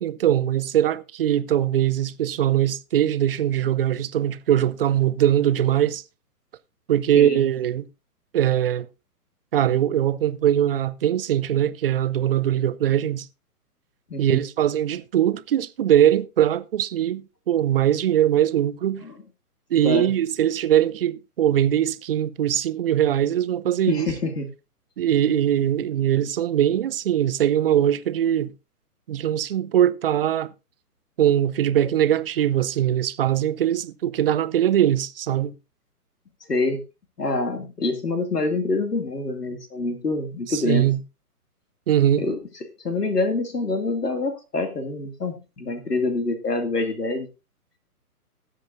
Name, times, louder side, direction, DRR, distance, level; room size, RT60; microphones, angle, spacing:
voice 1, 0.0-6.0 6.9-7.9 8.3-8.9 9.5-13.3 14.2-19.0 19.7-24.1 25.0-28.5 29.1-30.5 31.2-35.5 40.5-41.0 41.9-42.2, right 11 dB, 40° right, 0.6 m, -21 dB
voice 2, 14.1-14.4 19.0-19.1 19.8-20.1 23.9-24.5 36.5-36.8 37.2-40.9 42.2-42.4 42.8-47.3, left 3 dB, 85° left, 2.6 m, -26 dB
19.0 x 7.7 x 2.6 m
figure-of-eight pair, 130°, 46 cm